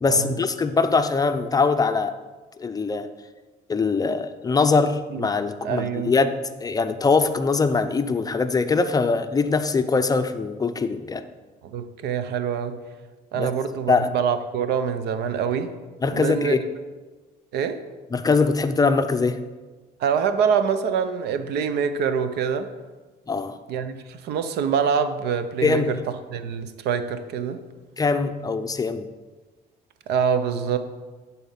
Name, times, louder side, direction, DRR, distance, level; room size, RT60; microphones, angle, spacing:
voice 1, 0.0-2.2 2.6-3.1 3.7-11.2 13.3-13.5 13.9-14.1 16.0-16.6 18.1-19.4 23.3-23.6 25.6-26.0 28.0-29.1, left 4 dB, 20° left, 9 dB, 0.5 m, -22 dB
voice 2, 5.6-6.1 11.6-12.8 13.3-15.7 16.1-16.7 17.5-17.8 20.0-22.7 23.7-26.0 26.3-27.6 30.1-30.8, right 7 dB, 75° right, 10 dB, 0.7 m, -25 dB
10.5 x 4.3 x 5.7 m, 1.3 s
cardioid pair, 110°, 17 cm